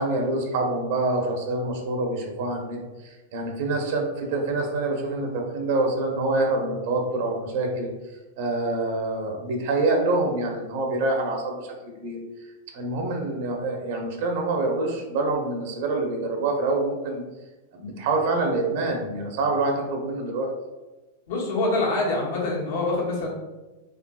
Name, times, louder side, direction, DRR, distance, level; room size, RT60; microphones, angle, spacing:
voice 1, 0.0-7.9 8.4-12.2 12.7-17.2 17.7-20.5, right 2 dB, 55° right, 2 dB, 0.8 m, -26 dB
voice 2, 21.3-23.3, left 2 dB, 60° left, -4 dB, 1.2 m, -25 dB
4.9 x 2.6 x 2.3 m, 1.1 s
figure-of-eight pair, 95°, 0 cm